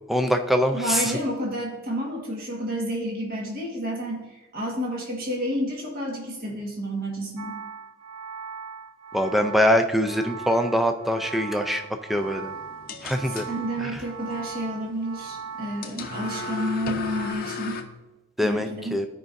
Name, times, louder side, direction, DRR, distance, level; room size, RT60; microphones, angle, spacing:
voice 1, 0.1-1.2 9.1-11.8 12.1-12.5 13.0-13.5 13.8-14.0 18.4-19.1, equal, ahead, 6 dB, 0.4 m, -23 dB
voice 2, 0.7-7.6 13.4-17.8 18.4-19.0, equal, 45° right, -1 dB, 1.6 m, -30 dB
sound 1, 7.4-17.3, right 6 dB, 85° right, 0.5 m, -39 dB
sound 2, 12.1-17.8, left 5 dB, 45° left, 0.7 m, -37 dB
13.5 x 5.1 x 2.6 m, 1.1 s
head